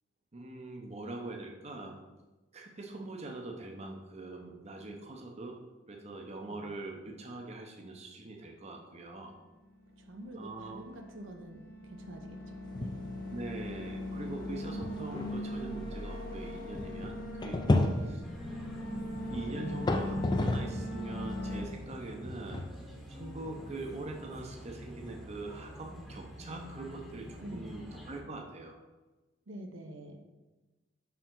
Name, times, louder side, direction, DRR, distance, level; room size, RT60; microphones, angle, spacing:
voice 1, 0.3-2.0 2.5-5.6 5.9-9.4 10.4-10.8 13.2-18.2 19.3-22.7 23.1-28.8, right 2 dB, 35° right, 2 dB, 0.6 m, -43 dB
sound 1, 9.8-21.6, left 1 dB, 50° left, 1.0 m, -40 dB
voice 2, 10.0-13.1 17.7-18.3 27.4-27.7 29.5-30.2, right 1 dB, 80° right, 3 dB, 0.7 m, -47 dB
sound 2, 12.7-13.1 13.5-13.6 14.2-14.3 14.8-20.9 21.3-25.6, left 2 dB, 20° left, 0.3 m, -34 dB
sound 3, 18.2-28.2, equal, ahead, 0.9 m, -48 dB
5.7 x 4.6 x 3.8 m, 1.1 s
head